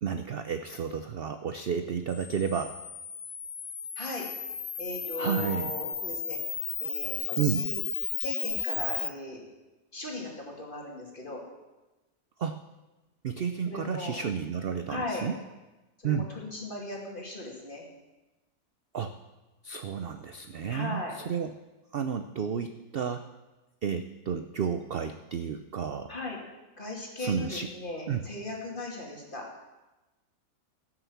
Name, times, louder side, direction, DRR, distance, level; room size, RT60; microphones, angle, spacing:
voice 1, 0.0-2.7 5.2-5.7 7.4-7.6 12.4-12.6 13.2-15.4 16.0-16.3 18.9-19.1 19.6-21.5 21.9-23.2 23.8-26.1 27.2-27.7 28.1-28.2, right 7 dB, 55° right, 9 dB, 0.6 m, -31 dB
Camera, 2.1-9.1, left 6 dB, 55° left, 0.4 m, -34 dB
voice 2, 4.0-4.3 4.8-6.4 6.8-7.8 8.2-9.4 9.9-11.4 13.7-14.2 14.9-15.3 16.0-17.8 20.7-21.1 26.1-26.4 26.8-29.4, left 2 dB, 35° left, -1 dB, 2.7 m, -37 dB
15.5 x 6.9 x 7.2 m, 1.1 s
omnidirectional pair, 1.5 m